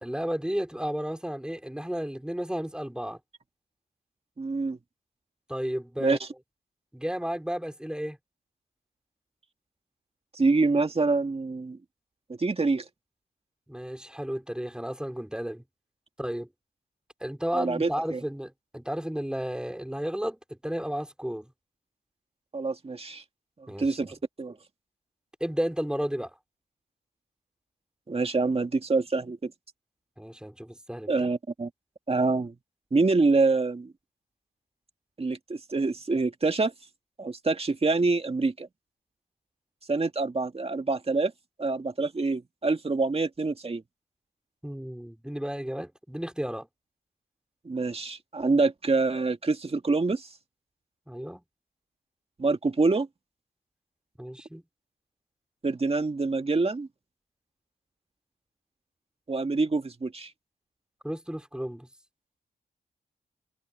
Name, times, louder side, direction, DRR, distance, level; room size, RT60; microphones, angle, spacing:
voice 1, 0.0-3.2 5.5-6.2 6.9-8.2 13.7-15.6 16.2-16.5 17.2-21.5 23.7-24.1 25.4-26.3 30.2-31.1 44.6-46.7 51.1-51.4 54.2-54.6 61.0-61.9, equal, 5° right, 3.3 m, -33 dB
voice 2, 4.4-4.8 6.0-6.3 10.3-11.8 12.4-12.8 17.5-18.2 22.5-23.2 23.8-24.6 28.1-29.5 31.1-31.7 32.1-32.6 32.9-33.9 35.2-36.7 37.2-38.7 39.9-41.3 41.6-43.8 47.6-50.3 52.4-53.1 55.6-56.9 59.3-60.3, right 3 dB, 35° right, 2.0 m, -26 dB
cardioid pair, 65°, 17 cm